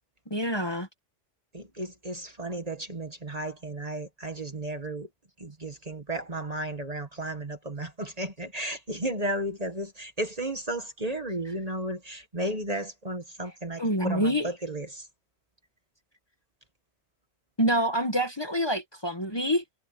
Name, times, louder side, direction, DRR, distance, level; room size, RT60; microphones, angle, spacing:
voice 1, 0.3-0.9 13.8-14.5 17.6-19.6, equal, 20° left, 1.5 m, -26 dB
voice 2, 1.5-5.1 5.4-15.1, right 1 dB, 30° right, 1.7 m, -34 dB
omnidirectional pair, 1.2 m